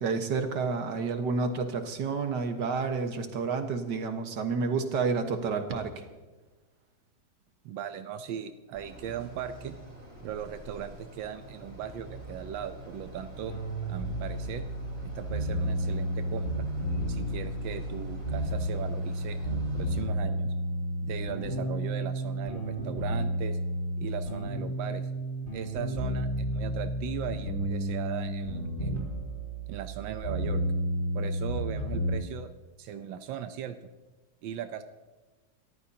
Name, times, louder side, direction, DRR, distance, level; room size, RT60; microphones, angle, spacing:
voice 1, 0.0-5.9, right 4 dB, 70° right, 6 dB, 1.9 m, -30 dB
voice 2, 7.6-9.8 10.2-13.5 13.8-14.7 15.0-16.7 17.1-20.5 21.0-23.6 24.0-25.1 25.5-29.2 29.7-30.6 31.1-32.5 32.8-33.8 34.4-34.8, right 9 dB, 90° right, 9 dB, 1.5 m, -38 dB
sound 1, 8.7-20.0, right 1 dB, 35° right, 4.5 m, -45 dB
sound 2, 13.5-32.1, right 1 dB, 45° left, 4.2 m, -32 dB
28.0 x 14.0 x 2.8 m, 1.2 s
omnidirectional pair, 2.0 m